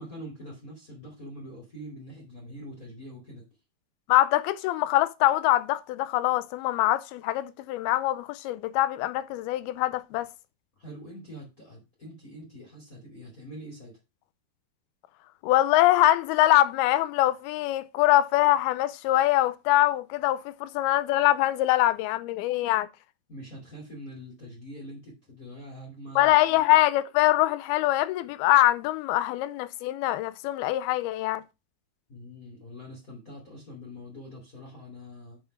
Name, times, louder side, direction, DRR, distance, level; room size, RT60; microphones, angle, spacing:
voice 1, 0.0-3.4 10.8-14.0 23.3-26.6 32.1-35.4, equal, 25° left, 2.5 m, -44 dB
voice 2, 4.1-10.3 15.4-22.9 26.2-31.4, left 15 dB, 85° left, 2.6 m, -23 dB
6.2 x 5.6 x 5.9 m
omnidirectional pair, 4.4 m